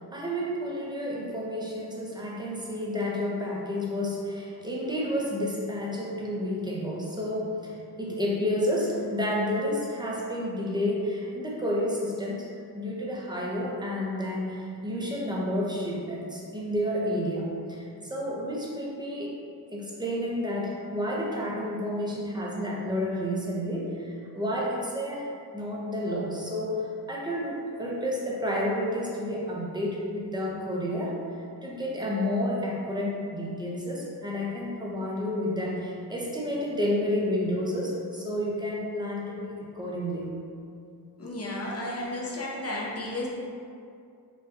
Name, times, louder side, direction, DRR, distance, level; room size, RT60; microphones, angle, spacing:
voice 1, 0.1-12.5 12.7-19.3 19.7-25.3 25.5-26.8 27.1-31.2 31.6-40.3, left 1 dB, 10° right, -4 dB, 0.6 m, -30 dB
voice 2, 41.2-43.3, left 1 dB, 35° left, -4 dB, 0.6 m, -33 dB
4.0 x 2.2 x 2.6 m, 2.4 s
wide cardioid pair, 65°, 42 cm